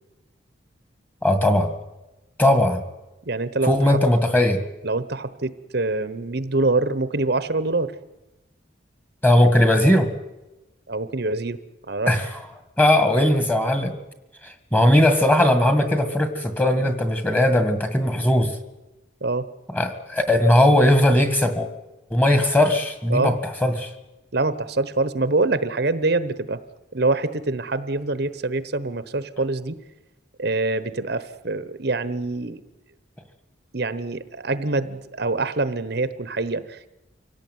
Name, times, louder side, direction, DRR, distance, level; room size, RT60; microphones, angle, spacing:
voice 1, 1.2-1.7 2.4-2.8 3.6-4.6 9.2-10.1 12.1-12.4 12.8-14.0 14.7-18.5 19.7-21.7 22.1-23.3 23.6-23.9, left 1 dB, 10° left, 8 dB, 1.9 m, -18 dB
voice 2, 3.3-4.0 4.8-7.9 10.9-11.6 11.9-12.1 16.7-16.9 19.2-19.5 23.1-23.3 24.3-26.6 26.9-29.8 30.4-32.6 33.7-36.9, right 2 dB, 55° right, 13 dB, 1.0 m, -25 dB
25.0 x 17.5 x 9.4 m, 1.0 s
head